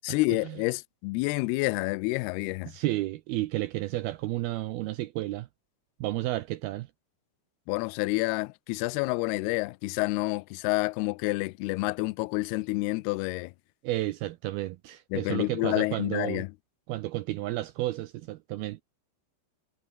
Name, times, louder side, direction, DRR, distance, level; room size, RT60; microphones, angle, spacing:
voice 1, 0.1-2.7 7.7-13.5 15.1-16.5, left 23 dB, 85° left, 2.3 m, -29 dB
voice 2, 2.7-5.5 6.0-6.9 13.8-16.4 16.9-18.8, right 17 dB, 85° right, 2.2 m, -32 dB
omnidirectional pair, 5.3 m